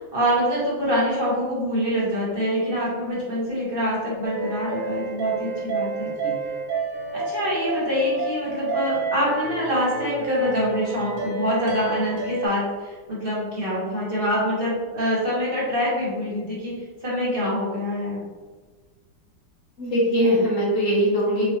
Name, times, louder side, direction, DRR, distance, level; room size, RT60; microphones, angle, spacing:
voice 1, 0.1-6.1 7.1-18.2, equal, 30° right, -7 dB, 1.2 m, -25 dB
sound 1, 4.2-12.5, right 4 dB, 70° right, 1.5 m, -30 dB
voice 2, 6.0-6.3 19.8-21.5, equal, 50° left, -4 dB, 1.0 m, -21 dB
5.9 x 2.9 x 3.0 m, 1.3 s
omnidirectional pair, 2.4 m